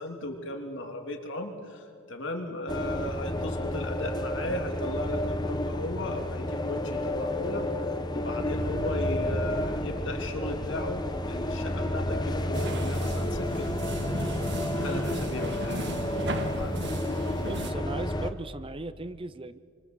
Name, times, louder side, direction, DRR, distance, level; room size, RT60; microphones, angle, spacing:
voice 1, 0.0-7.7 8.1-13.7 14.8-15.9 16.5-16.8, left 1 dB, 60° left, 3 dB, 3.2 m, -36 dB
sound 1, 2.7-18.3, left 1 dB, 20° left, 1.2 m, -31 dB
Bass guitar, 8.5-18.3, equal, 80° left, 3.8 m, -45 dB
sound 2, 12.5-17.7, right 1 dB, 55° right, 1.7 m, -36 dB
voice 2, 17.3-19.6, right 2 dB, 25° right, 14 dB, 0.7 m, -37 dB
28.5 x 25.0 x 8.1 m, 2.3 s
head